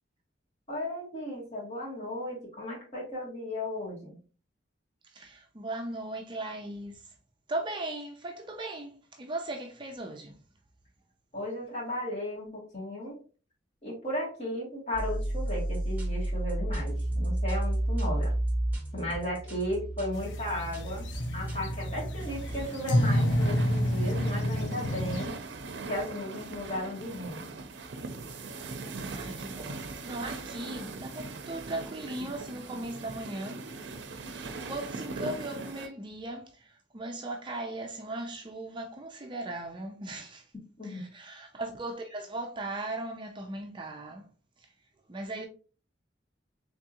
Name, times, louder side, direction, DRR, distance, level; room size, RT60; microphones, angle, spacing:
voice 1, 0.7-4.2 11.3-13.2 13.8-18.3 18.9-25.3 25.9-27.5 40.8-41.1, left 1 dB, 35° left, 2.2 m, -35 dB
voice 2, 5.1-7.0 7.5-8.9 9.2-10.4 29.1-33.6 34.3-36.5 36.9-40.4 40.8-44.3 45.1-45.5, right 2 dB, 25° right, 0.5 m, -38 dB
sound 1, 14.9-22.6, right 1 dB, 10° right, 1.1 m, -32 dB
sound 2, 20.1-25.3, equal, 80° left, 0.6 m, -29 dB
sound 3, 22.2-35.9, right 3 dB, 70° right, 0.6 m, -40 dB
3.6 x 3.6 x 2.8 m
head